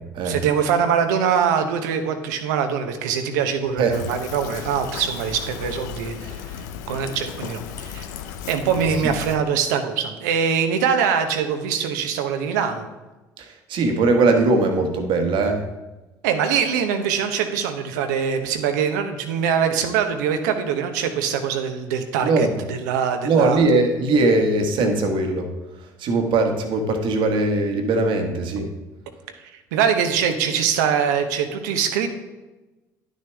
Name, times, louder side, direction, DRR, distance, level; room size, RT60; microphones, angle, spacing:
voice 1, 0.2-6.5 6.9-8.1 8.5-12.9 16.2-23.6 29.7-32.1, right 7 dB, 80° right, 7 dB, 0.8 m, -23 dB
Fill (with liquid), 3.9-9.4, left 9 dB, 85° left, 0.5 m, -35 dB
voice 2, 13.4-15.6 22.2-22.5 23.2-25.5 26.0-28.7, right 3 dB, 60° right, 4 dB, 1.3 m, -20 dB
10.5 x 6.4 x 3.4 m, 1.1 s
hypercardioid pair, 65°, 9 cm